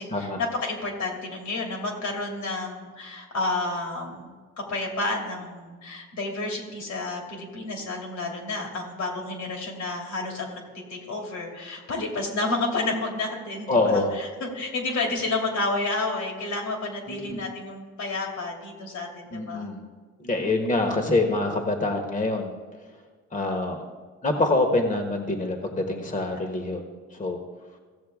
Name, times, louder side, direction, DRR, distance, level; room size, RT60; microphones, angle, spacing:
voice 1, 0.0-4.3 4.6-19.7, left 2 dB, 75° left, 0 dB, 2.8 m, -30 dB
voice 2, 13.7-14.1 17.1-17.4 19.3-19.8 20.2-22.5 23.3-23.8 24.2-26.8 27.1-27.4, left 2 dB, 25° left, 4 dB, 1.2 m, -25 dB
15.5 x 7.4 x 3.6 m, 1.5 s
cardioid pair, 90°, 30 cm